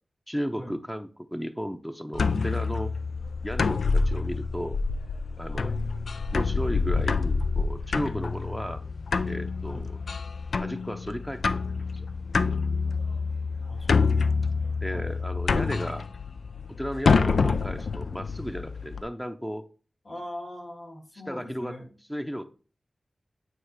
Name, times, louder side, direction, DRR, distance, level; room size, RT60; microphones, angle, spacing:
voice 1, 0.3-2.9 3.4-4.8 5.4-5.7 6.3-8.8 9.2-10.0 10.6-11.6 11.9-12.1 14.8-16.0 16.8-19.7 21.3-21.8 22.1-22.4, equal, 5° left, 6 dB, 0.6 m, -34 dB
sound 1, 2.1-19.0, left 4 dB, 90° left, 0.4 m, -27 dB
voice 2, 5.5-5.8 9.7-9.9 13.7-14.4 14.9-15.1 20.0-21.9, equal, 50° left, 2 dB, 2.3 m, -41 dB
8.8 x 3.0 x 4.7 m, 0.39 s
cardioid pair, 50°, 0 cm